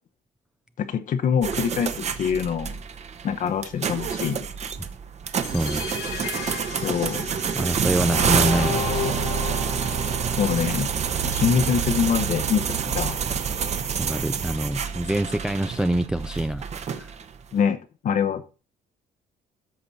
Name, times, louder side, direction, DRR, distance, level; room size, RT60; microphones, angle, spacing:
voice 1, 0.8-2.8 3.2-4.5 6.8-7.3 10.4-10.9 11.2-13.2 17.5-17.8 18.0-18.4, left 7 dB, 50° left, 0.9 m, -24 dB
sound 1, 1.4-17.4, right 7 dB, 40° right, 1.0 m, -27 dB
sound 2, 5.4-11.4, left 8 dB, 85° left, 1.9 m, -34 dB
voice 2, 5.5-5.9 7.5-9.3 14.0-17.1, right 1 dB, 5° right, 0.4 m, -26 dB
13.5 x 6.0 x 4.1 m
cardioid pair, 110°, 17 cm